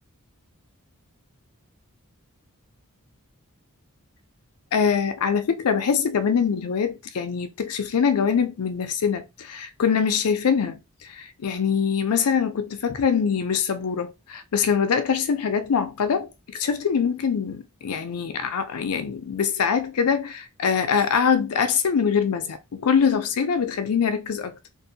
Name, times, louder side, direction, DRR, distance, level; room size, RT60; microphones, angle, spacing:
voice 1, 4.7-10.8 11.1-24.7, left 6 dB, 80° left, 0.5 m, -23 dB
2.6 x 2.1 x 2.6 m
head